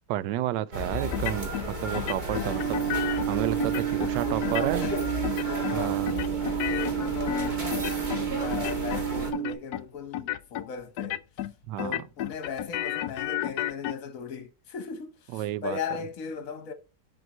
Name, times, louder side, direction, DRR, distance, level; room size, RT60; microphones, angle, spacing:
voice 1, 0.1-2.8 3.3-4.9 5.7-6.1 11.7-12.0 15.3-15.8, right 13 dB, 80° right, 1.2 m, -31 dB
sound 1, 0.7-9.3, right 1 dB, 25° right, 1.7 m, -34 dB
sound 2, 1.1-1.7 1.9-3.3 3.6-4.1 4.4-5.0 5.2-5.8 6.1-8.3 8.5-9.1 9.3-9.8 10.1-10.7 11.0-11.5 11.8-13.9, left 13 dB, 75° left, 1.1 m, -32 dB
voice 2, 2.4-3.1 4.2-5.1 5.3-11.2 11.8-16.7, left 6 dB, 55° left, 1.4 m, -38 dB
sound 3, 2.5-9.5, right 11 dB, 45° right, 3.0 m, -31 dB
7.6 x 5.4 x 4.3 m
omnidirectional pair, 1.9 m